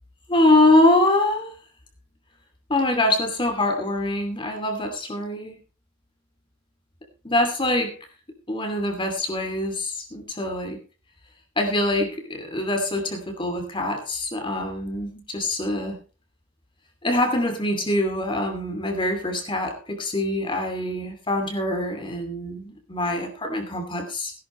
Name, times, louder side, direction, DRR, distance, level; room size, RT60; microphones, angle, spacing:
voice 1, 0.3-1.5 2.7-5.6 7.2-8.0 8.5-10.8 11.6-16.0 17.0-24.3, left 1 dB, 25° left, 5 dB, 2.6 m, -24 dB
17.5 x 11.5 x 3.2 m, 0.32 s
head